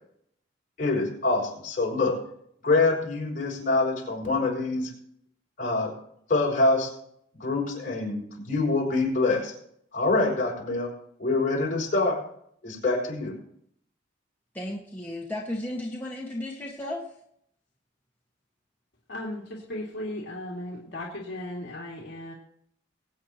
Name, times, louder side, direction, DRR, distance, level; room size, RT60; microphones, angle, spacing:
voice 1, 0.8-2.1 2.6-4.9 5.6-5.9 6.3-6.9 7.3-9.5 9.9-10.9 11.2-12.2 12.6-13.3, left 3 dB, 45° left, -4 dB, 6.0 m, -25 dB
voice 2, 14.5-17.0, left 1 dB, 10° left, -4 dB, 1.6 m, -34 dB
voice 3, 19.1-22.3, left 1 dB, 60° left, -4 dB, 2.4 m, -36 dB
23.0 x 8.9 x 2.9 m, 0.68 s
head